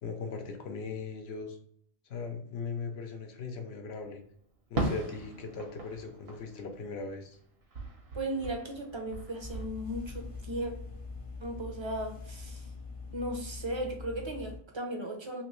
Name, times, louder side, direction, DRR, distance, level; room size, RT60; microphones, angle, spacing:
voice 1, 0.0-1.6 2.1-4.2 4.7-7.4, left 4 dB, 75° left, 5 dB, 0.9 m, -39 dB
Fireworks, 4.8-7.4 7.7-9.6, right 1 dB, 70° right, 1.1 m, -38 dB
voice 2, 8.1-10.7 11.4-12.7 13.1-15.4, right 1 dB, 35° right, 2 dB, 0.5 m, -36 dB
sound 1, 9.4-14.6, left 4 dB, 35° left, 0.6 m, -43 dB
3.0 x 3.0 x 3.0 m, 0.65 s
omnidirectional pair, 1.1 m